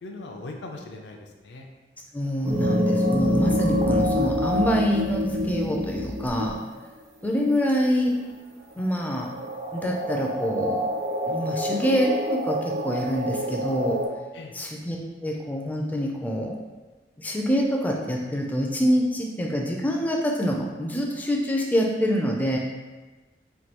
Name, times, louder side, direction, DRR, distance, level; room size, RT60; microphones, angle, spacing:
voice 1, 0.0-1.7 14.3-14.6, left 2 dB, 75° left, 2 dB, 0.4 m, -40 dB
voice 2, 2.1-6.6 7.2-8.1 8.8-9.3 9.7-10.8 11.3-14.0 14.5-16.6 17.2-22.6, equal, 10° left, 0 dB, 0.3 m, -26 dB
sound 1, 2.4-6.8 8.8-8.9 9.3-14.1, equal, 80° right, 0.9 m, -26 dB
3.2 x 2.2 x 2.9 m, 1.2 s
head